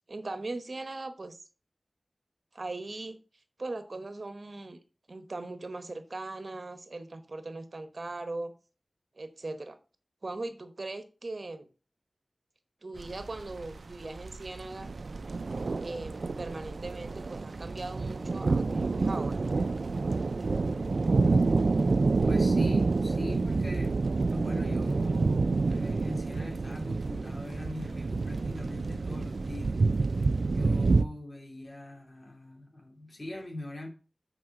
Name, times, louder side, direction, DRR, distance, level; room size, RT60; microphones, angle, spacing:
voice 1, 0.1-1.4 2.5-3.2 3.6-4.8 5.1-8.5 9.1-9.8 10.2-11.7 12.8-14.9 15.8-19.4, right 2 dB, 55° right, 1.0 m, -39 dB
sound 1, 13.0-31.0, right 3 dB, 75° right, 0.4 m, -28 dB
voice 2, 22.3-24.0 24.3-29.8 30.5-33.9, left 1 dB, 45° left, 2.5 m, -42 dB
6.3 x 4.8 x 5.8 m
wide cardioid pair, 75°, 0 cm